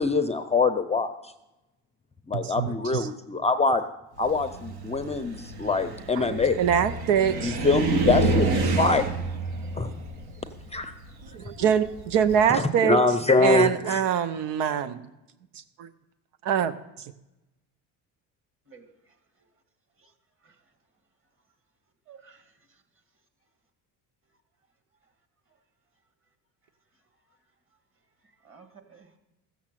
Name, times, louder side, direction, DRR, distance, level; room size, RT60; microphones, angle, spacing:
voice 1, 0.0-1.3 2.3-3.8 4.2-6.6 7.4-9.1 9.8-9.9 10.7-10.9 11.6-11.7 12.5-14.0, left 3 dB, 15° left, 8 dB, 0.5 m, -24 dB
voice 2, 2.3-3.1 6.2-7.6 11.3-13.0 13.4-15.0 15.8-15.9 16.4-16.7, right 8 dB, 85° right, 12 dB, 0.8 m, -24 dB
Car, 4.2-12.4, right 3 dB, 65° right, 1.5 m, -29 dB
voice 3, 8.4-9.2 11.4-11.9 18.7-18.9 20.0-20.1 20.4-20.6 22.1-22.5 28.4-29.1, right 4 dB, 30° right, 6 dB, 2.1 m, -45 dB
15.0 x 7.2 x 7.5 m, 0.95 s
cardioid pair, 115°, 40 cm